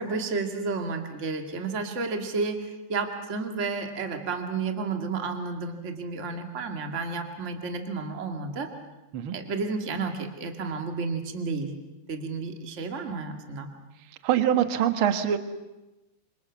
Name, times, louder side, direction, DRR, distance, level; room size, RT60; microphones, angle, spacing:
voice 1, 0.0-8.7 9.3-11.7 12.1-13.7, right 4 dB, 25° right, 4 dB, 1.7 m, -31 dB
voice 2, 14.2-15.4, right 10 dB, 70° right, 8 dB, 1.2 m, -23 dB
27.0 x 26.5 x 7.3 m, 1.0 s
omnidirectional pair, 4.6 m